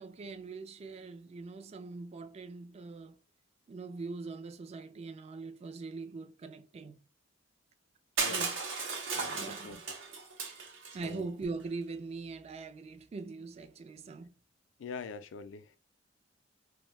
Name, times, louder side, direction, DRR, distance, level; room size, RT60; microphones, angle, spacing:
voice 1, 0.0-3.2 3.7-7.0 8.2-8.6 9.3-9.8 10.9-14.3, right 3 dB, 35° right, 0.3 m, -42 dB
voice 2, 8.2-8.5 9.1-9.8 11.0-11.3 14.8-15.8, left 5 dB, 75° left, 0.4 m, -44 dB
Crushing, 8.2-11.1, right 4 dB, 85° right, 0.7 m, -35 dB
2.6 x 2.1 x 3.1 m
head